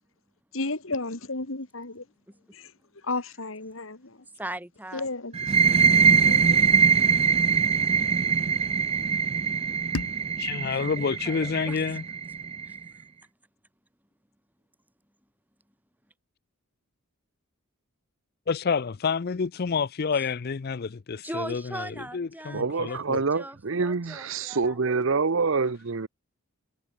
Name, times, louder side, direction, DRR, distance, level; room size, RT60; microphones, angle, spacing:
voice 1, 0.5-2.0 2.5-2.7 3.0-4.3 4.9-6.6, left 3 dB, 65° left, 2.2 m, -34 dB
voice 2, 4.1-5.1 10.7-11.8 12.6-13.0 20.1-20.3 21.2-25.0, right 1 dB, 10° right, 4.1 m, -40 dB
sound 1, 5.3-12.8, right 6 dB, 25° right, 0.4 m, -22 dB
sound 2, 9.9-12.8, left 2 dB, 85° left, 2.1 m, -40 dB
voice 3, 10.4-12.0 18.5-21.8 22.1-23.2, left 5 dB, 45° left, 0.5 m, -28 dB
voice 4, 22.5-26.1, right 4 dB, 60° right, 0.7 m, -26 dB
head